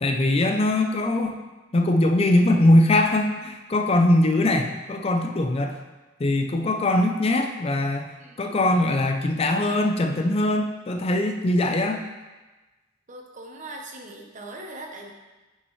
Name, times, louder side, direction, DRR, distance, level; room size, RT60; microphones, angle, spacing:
voice 1, 0.0-1.4 1.7-5.8 6.2-8.1 8.4-12.0, left 1 dB, 30° left, 4 dB, 0.5 m, -21 dB
voice 2, 13.1-15.1, right 2 dB, 40° right, 1 dB, 0.9 m, -40 dB
8.4 x 5.5 x 3.2 m, 1.2 s
head